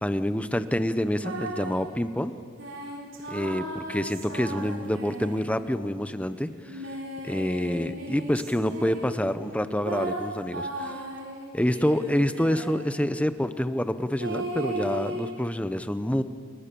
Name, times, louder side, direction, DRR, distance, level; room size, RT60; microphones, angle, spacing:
voice 1, 0.0-2.4 3.3-6.9 7.2-11.0 11.5-16.2, equal, 5° left, 11 dB, 0.9 m, -27 dB
sound 1, 1.2-1.8 2.6-5.8 6.7-9.2 9.8-12.9 14.2-15.3, right 1 dB, 70° right, 4.2 m, -36 dB
30.0 x 22.5 x 7.0 m, 2.1 s
head